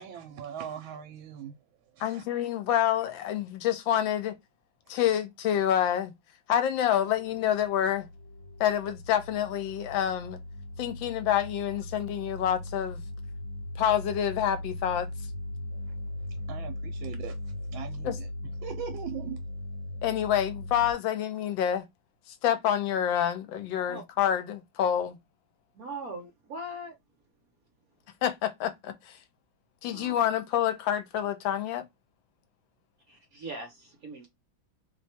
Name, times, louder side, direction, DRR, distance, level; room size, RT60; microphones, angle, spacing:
voice 1, 0.0-1.6 2.0-2.2 4.9-5.0 16.5-17.4 17.7-18.3 18.6-19.4, right 10 dB, 80° right, 1.4 m, -40 dB
voice 2, 2.0-4.4 4.9-6.1 6.5-8.1 8.6-10.4 10.8-13.0 13.8-15.1 18.0-18.2 20.0-21.8 22.3-25.2 28.2-29.2 29.8-31.8, left 10 dB, 75° left, 1.3 m, -27 dB
sound 1, 6.8-20.9, left 1 dB, 35° right, 1.4 m, -39 dB
voice 3, 25.7-26.9 29.8-30.1 33.1-34.3, right 1 dB, 55° right, 1.1 m, -40 dB
3.3 x 2.2 x 4.2 m
omnidirectional pair, 2.2 m